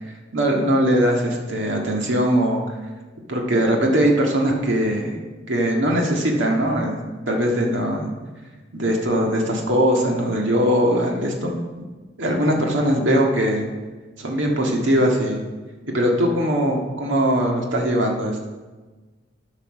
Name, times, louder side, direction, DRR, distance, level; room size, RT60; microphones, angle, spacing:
voice 1, 0.3-2.7 3.3-5.2 5.5-7.0 7.3-8.1 8.7-11.6 12.2-13.6 14.2-15.4 15.9-18.5, equal, 85° right, 0 dB, 1.8 m, -20 dB
11.5 x 5.9 x 6.0 m, 1.3 s
head